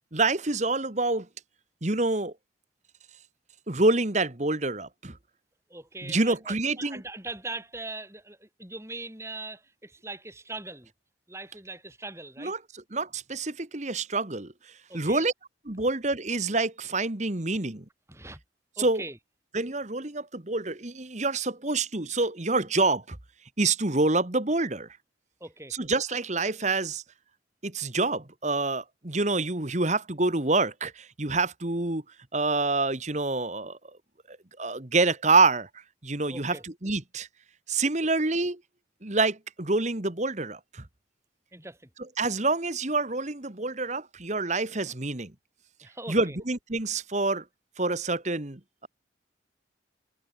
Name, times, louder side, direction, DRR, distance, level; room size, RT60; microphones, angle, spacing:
voice 1, 0.1-1.3 1.8-2.3 3.7-5.2 6.0-7.0 12.4-12.6 12.9-14.5 14.9-15.3 15.7-17.8 18.8-19.0 19.5-23.2 23.6-24.9 25.7-27.0 27.6-32.0 32.3-33.8 34.3-35.7 36.0-37.3 37.7-38.6 39.0-40.8 42.2-45.3 46.1-47.4 47.8-48.9, right 3 dB, 35° right, 1.6 m, -27 dB
voice 2, 5.7-10.9 11.3-12.5 14.9-15.2 18.1-18.4 18.8-19.2 25.4-25.8 36.3-36.6 41.5-41.9 45.8-46.4, right 2 dB, 15° right, 6.1 m, -41 dB
head